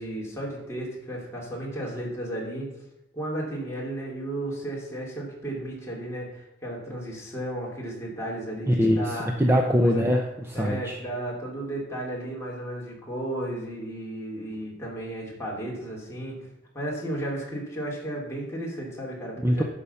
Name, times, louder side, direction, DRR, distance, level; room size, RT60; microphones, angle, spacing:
voice 1, 0.0-2.7 3.1-9.3 9.6-10.0 10.5-16.4 16.7-19.6, right 1 dB, 15° left, -4 dB, 3.0 m, -34 dB
voice 2, 8.7-11.0 19.4-19.6, equal, 10° right, 2 dB, 0.7 m, -23 dB
11.5 x 5.1 x 7.0 m, 0.86 s
head